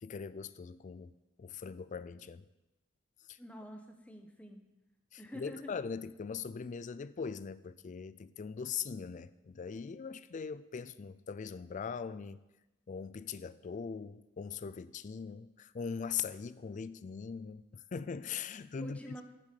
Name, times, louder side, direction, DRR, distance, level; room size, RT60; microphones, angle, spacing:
voice 1, 0.0-1.1 1.4-2.4 3.3-3.4 5.1-12.4 12.9-19.0, left 6 dB, 40° left, 0.3 m, -41 dB
voice 2, 3.4-4.7 5.2-5.8 18.8-19.2, equal, 5° left, 0.9 m, -47 dB
7.5 x 6.2 x 7.6 m
head